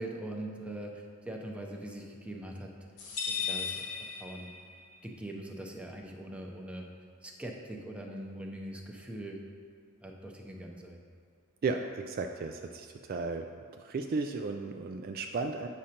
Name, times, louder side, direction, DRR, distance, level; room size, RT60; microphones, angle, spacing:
voice 1, 0.0-2.7 3.4-3.9 4.2-4.5 5.0-6.8 7.2-9.4 10.0-11.0, right 1 dB, 5° right, -1 dB, 0.6 m, -42 dB
sound 1, 3.0-4.9, left 6 dB, 90° left, 1.2 m, -36 dB
voice 2, 11.6-13.5 13.8-15.7, right 4 dB, 45° right, 5 dB, 0.3 m, -34 dB
8.6 x 6.2 x 2.8 m, 2.2 s
head